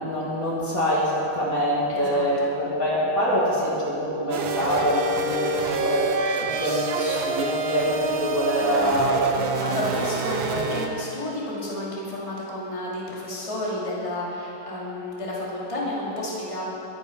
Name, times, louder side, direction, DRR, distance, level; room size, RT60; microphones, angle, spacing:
voice 1, 0.0-6.1 6.4-9.3, equal, 40° left, -6 dB, 2.6 m, -25 dB
voice 2, 1.9-2.5 3.2-3.4 8.6-16.6, left 1 dB, 15° left, -5 dB, 2.5 m, -31 dB
sound 1, 4.3-10.9, right 3 dB, 70° right, 1.7 m, -27 dB
21.5 x 9.1 x 5.3 m, 2.9 s
omnidirectional pair, 2.2 m